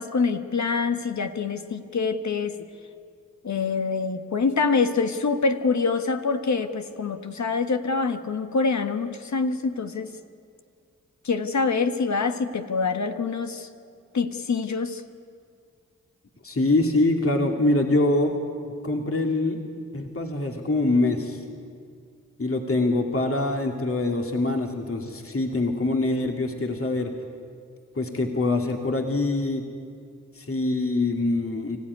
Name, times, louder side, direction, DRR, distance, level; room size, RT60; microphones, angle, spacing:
voice 1, 0.0-2.6 3.4-10.1 11.2-13.7 14.1-15.0, left 4 dB, 65° left, 8 dB, 1.5 m, -25 dB
voice 2, 16.4-18.4 18.8-19.6 19.9-21.4 22.4-27.1 27.9-29.7 30.3-31.8, left 2 dB, 45° left, 3 dB, 2.6 m, -24 dB
25.5 x 15.0 x 9.7 m, 2.3 s
cardioid pair, 45°, 31 cm